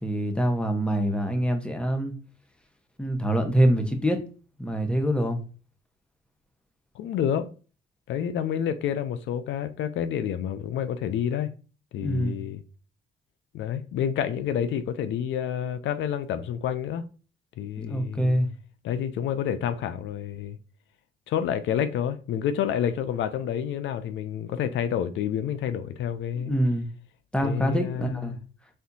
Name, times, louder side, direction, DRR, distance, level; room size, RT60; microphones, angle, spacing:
voice 1, 0.0-2.1 3.0-4.2 4.6-5.4 12.0-12.4 17.8-18.5 26.4-26.9 27.3-28.3, equal, 5° left, 0.9 m, -25 dB
voice 2, 7.0-7.5 8.1-11.5 11.9-12.6 13.5-17.0 17.6-18.4 18.8-20.6 21.3-26.5 27.4-28.4, left 9 dB, 75° left, 0.4 m, -29 dB
4.3 x 3.5 x 2.6 m
cardioid pair, 90°, 20 cm